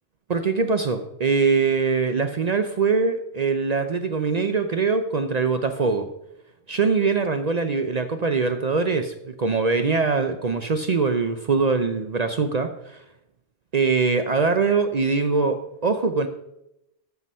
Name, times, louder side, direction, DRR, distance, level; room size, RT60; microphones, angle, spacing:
voice 1, 0.3-6.1 6.7-13.0 13.7-16.3, right 4 dB, 90° right, 8 dB, 0.3 m, -23 dB
13.5 x 5.9 x 5.5 m, 0.85 s
omnidirectional pair, 1.6 m